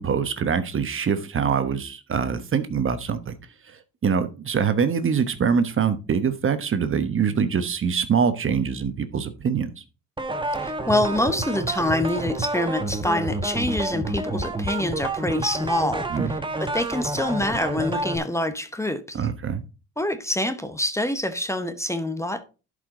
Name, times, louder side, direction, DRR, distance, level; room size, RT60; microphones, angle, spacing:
voice 1, 0.0-3.3 3.7-9.7 16.1-16.3 19.1-19.6, right 6 dB, 45° right, 1.1 m, -24 dB
sound 1, 10.2-18.2, right 2 dB, 15° right, 1.3 m, -29 dB
voice 2, 10.6-19.2 20.0-22.4, left 1 dB, 10° left, 0.9 m, -26 dB
11.0 x 5.1 x 3.7 m
cardioid pair, 90°, 30 cm